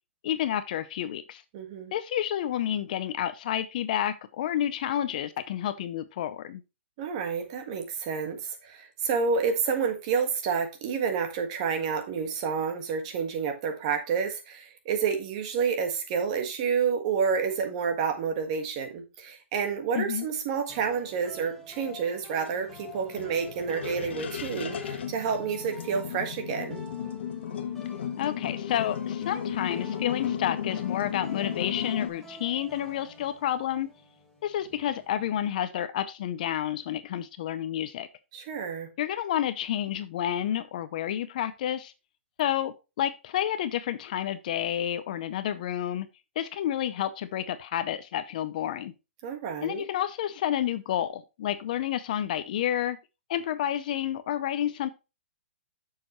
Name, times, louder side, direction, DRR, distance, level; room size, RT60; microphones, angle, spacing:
voice 1, 0.2-1.4 1.9-6.6 19.9-20.3 28.2-33.9 34.4-38.1 39.0-41.9 42.4-46.1 46.4-48.9 49.6-53.0 53.3-54.9, left 11 dB, 40° left, 0.6 m, -30 dB
voice 2, 1.5-1.9 7.0-26.8 38.3-38.9 49.2-49.9, right 6 dB, 30° right, 1.6 m, -29 dB
sound 1, 20.7-35.4, left 2 dB, 5° left, 1.3 m, -49 dB
sound 2, 22.5-32.1, left 8 dB, 60° left, 1.3 m, -35 dB
7.5 x 6.5 x 3.0 m
hypercardioid pair, 165°, 7 cm